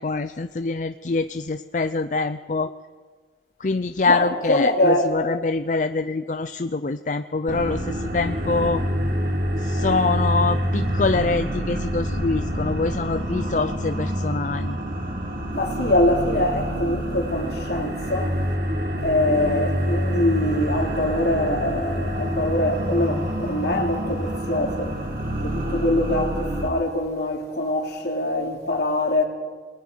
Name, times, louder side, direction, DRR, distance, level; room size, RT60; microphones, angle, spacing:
voice 1, 0.0-2.7 3.6-8.8 9.6-14.8, left 3 dB, 45° left, 0.5 m, -25 dB
voice 2, 4.1-5.1 15.5-18.3 19.0-24.9 25.4-29.2, left 1 dB, 65° left, 3.2 m, -23 dB
sound 1, 7.5-26.7, equal, 50° right, 2.6 m, -27 dB
29.0 x 20.5 x 4.6 m
head